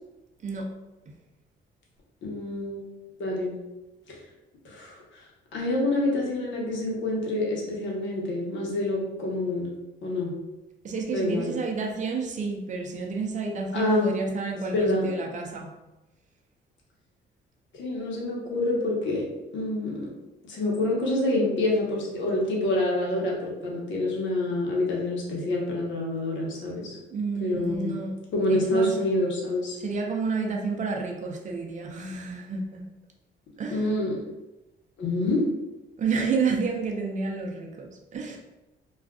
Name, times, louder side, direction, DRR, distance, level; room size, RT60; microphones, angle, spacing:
voice 1, 2.2-2.9 3.2-3.5 4.1-4.2 4.6-4.9 5.5-9.7 10.0-10.3 11.1-11.5 13.7-14.1 14.7-15.1 17.7-19.2 19.5-20.1 20.5-26.9 27.4-27.9 28.3-29.8 33.7-34.2 35.0-35.5, left 1 dB, 70° left, -3 dB, 1.0 m, -27 dB
voice 2, 10.8-15.7 27.1-28.2 28.5-29.0 29.8-32.8 33.6-34.0 36.0-38.4, right 4 dB, 40° right, 0 dB, 0.6 m, -30 dB
2.4 x 2.4 x 3.5 m, 1.0 s
cardioid pair, 90°, 20 cm